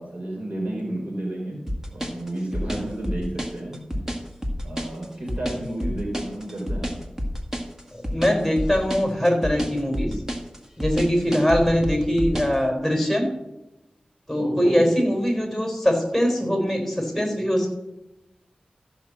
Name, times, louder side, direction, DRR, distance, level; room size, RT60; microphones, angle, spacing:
voice 1, 0.0-1.6 1.9-3.8 4.6-7.0 14.4-14.9, right 1 dB, 65° right, -1 dB, 4.0 m, -31 dB
sound 1, 1.7-12.6, equal, 20° right, 1.9 m, -29 dB
voice 2, 7.9-10.1 10.8-13.3 14.3-17.7, equal, ahead, 2 dB, 4.0 m, -22 dB
14.0 x 5.6 x 7.3 m, 0.96 s
wide cardioid pair, 65°, 3 cm